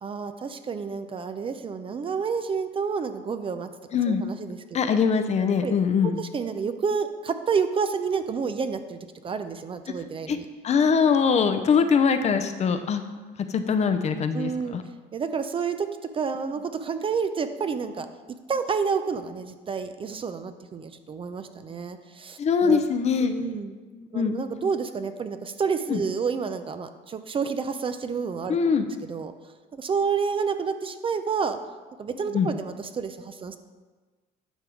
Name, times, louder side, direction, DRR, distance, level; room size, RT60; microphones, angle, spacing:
voice 1, 0.0-3.7 4.1-5.0 5.6-5.7 6.0-10.5 14.3-14.8 15.1-18.1 18.5-22.8 23.2-23.7 24.1-28.6 29.1-29.3 29.7-31.6 32.0-33.6, right 5 dB, 30° right, 9 dB, 0.5 m, -29 dB
voice 2, 3.9-4.2 4.7-6.2 10.3-10.4 10.6-13.0 13.5-14.8 22.4-23.3 23.9-24.6 25.9-26.0 28.5-28.9 32.3-32.5, left 6 dB, 35° left, 8 dB, 0.6 m, -22 dB
9.9 x 3.5 x 6.2 m, 1.3 s
cardioid pair, 120°, 19 cm